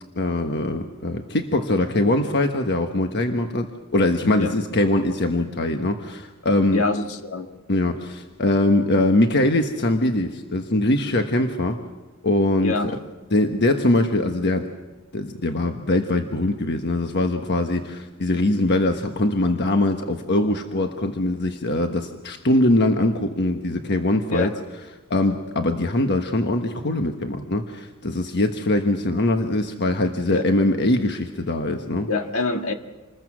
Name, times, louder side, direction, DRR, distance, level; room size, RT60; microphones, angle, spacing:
voice 1, 0.2-6.8 7.7-11.8 12.2-12.7 13.3-14.7 15.1-24.5 25.1-32.1, left 1 dB, 50° left, 5 dB, 1.3 m, -22 dB
voice 2, 6.7-7.5 12.6-13.0 24.3-24.5 30.3-30.4 32.1-32.7, left 3 dB, 70° left, 5 dB, 1.8 m, -25 dB
27.5 x 21.0 x 6.2 m, 1.2 s
head